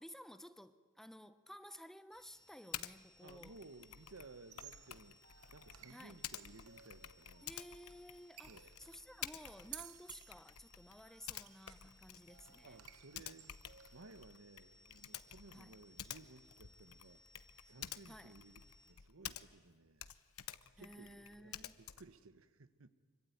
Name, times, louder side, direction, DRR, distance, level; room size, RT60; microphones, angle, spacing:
voice 1, 0.0-3.5 5.9-6.2 7.4-12.8 15.5-15.8 18.1-18.4 20.8-21.7, equal, ahead, 0.8 m, -55 dB
sound 1, 2.1-18.9, left 1 dB, 20° left, 3.7 m, -67 dB
Typing, 2.7-2.9 3.3-19.7 20.0-22.2, left 11 dB, 90° left, 1.0 m, -51 dB
voice 2, 3.2-5.2 5.5-7.5 8.5-8.7 12.6-17.2 17.6-20.1 20.8-22.9, right 3 dB, 70° right, 1.2 m, -58 dB
sound 2, 4.4-14.2, right 11 dB, 90° right, 1.0 m, -58 dB
26.0 x 24.5 x 9.4 m
head